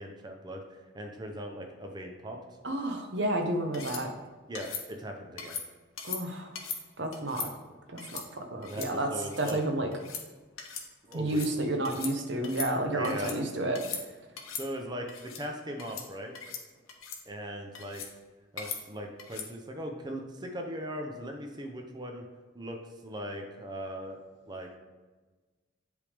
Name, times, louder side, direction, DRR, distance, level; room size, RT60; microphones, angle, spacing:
voice 1, 0.0-2.4 4.5-5.6 8.6-9.6 11.0-11.6 12.9-13.4 14.6-16.4 17.3-18.0 18.5-22.2 22.5-24.2 24.5-24.8, equal, 20° right, 2 dB, 0.7 m, -39 dB
voice 2, 2.6-4.1 6.0-6.5 7.0-7.5 7.9-9.1 9.4-9.9 11.1-13.8, right 1 dB, 55° right, 4 dB, 0.8 m, -31 dB
sound 1, 3.7-4.0 4.6-4.8 5.4-5.7 6.0-6.2 6.6-6.8 7.1-7.5 8.0-8.3 8.6-8.9 9.2-9.6 9.9-10.2 10.6-10.9 11.1-11.5 11.9-12.1 12.4-13.4 13.7-14.0 14.4-14.7 15.1-15.4 15.8-16.1 16.4-16.6 16.9-17.2 17.8-18.1 18.6-18.8 19.2-19.5, left 6 dB, 85° left, 1.0 m, -39 dB
8.1 x 3.5 x 5.1 m, 1.3 s
head